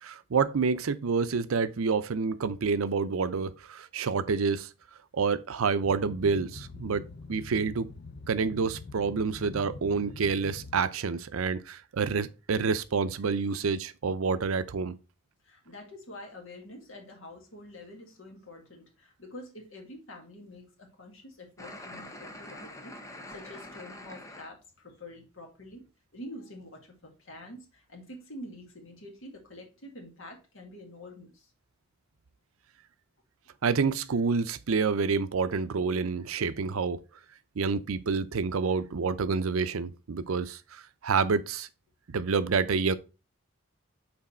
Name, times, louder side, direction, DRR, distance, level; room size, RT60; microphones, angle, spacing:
voice 1, 0.0-4.7 5.1-7.9 8.3-15.0 33.6-37.0 37.6-41.7 42.1-43.0, right 5 dB, 85° right, 0.5 m, -28 dB
Boat Water vehicle, 5.8-10.8, left 3 dB, 55° left, 0.6 m, -44 dB
voice 2, 15.4-25.9 26.1-31.5, left 1 dB, 70° left, 2.0 m, -47 dB
sound 1, 21.6-24.5, left 1 dB, 15° left, 0.7 m, -44 dB
6.1 x 4.1 x 4.3 m
head